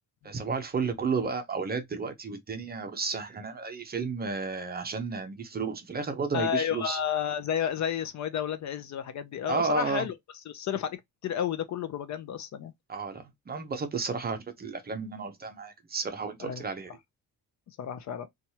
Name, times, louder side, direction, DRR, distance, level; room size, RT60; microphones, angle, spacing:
voice 1, 0.2-7.0 9.5-10.1 12.9-17.0, right 4 dB, 25° right, 0.5 m, -32 dB
voice 2, 6.3-10.1 10.5-11.0 11.2-12.7 16.4-16.6 17.8-18.3, left 8 dB, 50° left, 0.4 m, -31 dB
2.9 x 2.3 x 2.7 m
cardioid pair, 150°, 36 cm